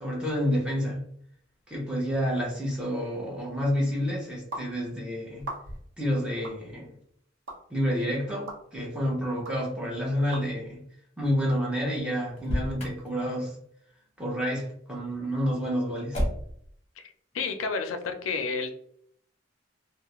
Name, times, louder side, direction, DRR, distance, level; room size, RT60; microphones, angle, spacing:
voice 1, 0.0-1.0 1.7-5.5 6.0-6.9 7.7-10.8 11.2-13.5 14.2-16.2, equal, 5° right, -4 dB, 0.6 m, -29 dB
sound 1, 4.5-4.7 5.4-5.9 6.4-6.6 7.5-7.6 8.5-8.6 9.4-9.6 10.3-10.4, right 1 dB, 75° right, 0.7 m, -37 dB
Motor vehicle (road), 12.3-13.1 16.1-16.7, equal, 35° left, 0.7 m, -30 dB
voice 2, 17.0-18.7, left 4 dB, 90° left, 7 dB, 0.4 m, -31 dB
2.3 x 2.0 x 2.9 m, 0.67 s
head